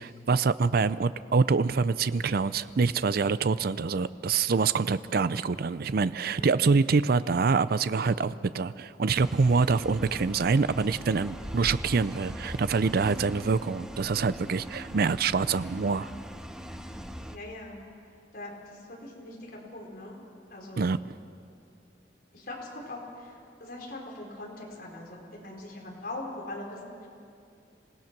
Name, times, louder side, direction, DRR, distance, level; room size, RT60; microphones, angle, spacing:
voice 1, 0.0-16.1 20.8-21.0, right 4 dB, 55° right, 15 dB, 0.5 m, -25 dB
voice 2, 6.3-6.7 9.6-9.9 17.2-17.8 18.3-20.2 20.5-20.9 22.3-27.1, left 2 dB, 55° left, -2 dB, 4.4 m, -42 dB
sound 1, 9.2-17.4, equal, 5° right, 0.8 m, -41 dB
26.5 x 17.0 x 5.9 m, 2.4 s
head